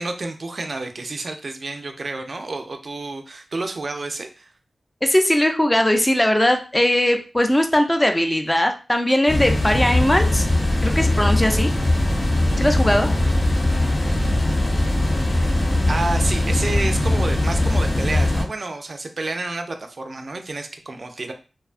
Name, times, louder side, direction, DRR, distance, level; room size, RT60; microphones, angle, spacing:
voice 1, 0.0-4.5 15.9-21.3, right 3 dB, 60° right, 6 dB, 0.4 m, -29 dB
voice 2, 5.0-10.5 10.8-11.7 12.6-13.1, left 1 dB, 15° left, 5 dB, 0.5 m, -19 dB
sound 1, 9.3-18.4, left 1 dB, 60° left, 0.8 m, -20 dB
2.7 x 2.2 x 2.4 m, 0.34 s
cardioid pair, 55°, 0 cm